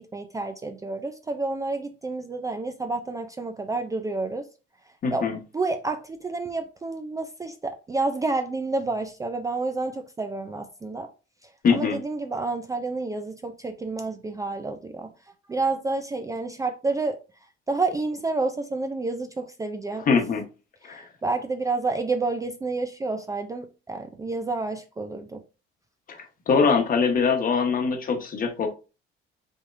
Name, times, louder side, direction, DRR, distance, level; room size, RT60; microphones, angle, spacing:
voice 1, 0.0-4.5 5.1-5.3 5.5-11.1 11.4-15.1 15.5-20.1 20.8-25.4, right 3 dB, 15° right, 0.4 m, -29 dB
voice 2, 5.0-5.4 11.6-12.0 20.1-20.4 20.8-21.0 26.1-28.7, left 5 dB, 40° left, 1.0 m, -23 dB
5.3 x 3.5 x 2.5 m
cardioid pair, 135°, 21 cm